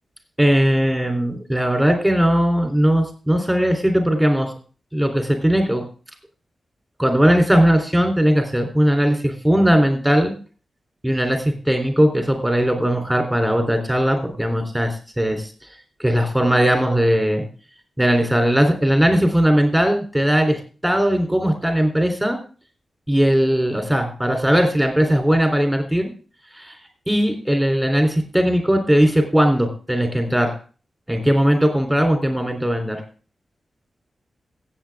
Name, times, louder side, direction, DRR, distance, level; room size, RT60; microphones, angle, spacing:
voice 1, 0.4-4.5 4.9-5.8 7.0-10.3 11.0-15.4 16.0-17.4 18.0-22.4 23.1-26.1 26.6-26.8 27.1-30.6 31.1-33.0, equal, 5° right, 4 dB, 3.5 m, -18 dB
16.0 x 8.5 x 3.6 m, 0.38 s
wide cardioid pair, 110°, 0 cm